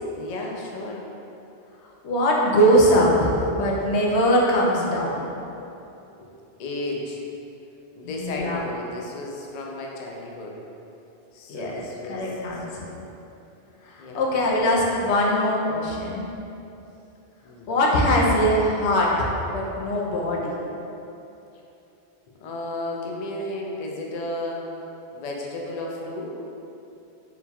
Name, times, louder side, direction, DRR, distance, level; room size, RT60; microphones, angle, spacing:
voice 1, 0.2-1.0 6.1-6.3 6.6-7.2 8.0-10.6 11.3-12.3 12.8-12.9 14.0-14.3 17.4-17.8 22.4-24.7 25.1-26.3, left 1 dB, 55° left, -1 dB, 0.5 m, -33 dB
voice 2, 2.0-5.3 8.0-8.6 11.5-13.0 13.9-16.3 17.7-20.6, equal, 80° left, -3 dB, 0.9 m, -22 dB
3.8 x 2.3 x 4.2 m, 2.9 s
omnidirectional pair, 1.1 m